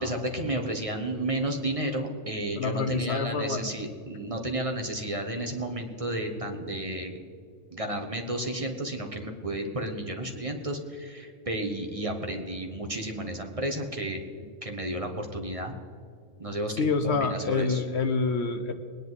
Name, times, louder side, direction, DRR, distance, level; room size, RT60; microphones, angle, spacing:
voice 1, 0.0-7.2 7.7-14.2 14.6-15.7 16.4-17.8, right 1 dB, 30° right, 3 dB, 1.4 m, -32 dB
voice 2, 2.6-3.7 16.8-18.7, left 4 dB, 65° left, 8 dB, 1.1 m, -27 dB
21.0 x 10.0 x 4.1 m, 2.3 s
omnidirectional pair, 1.2 m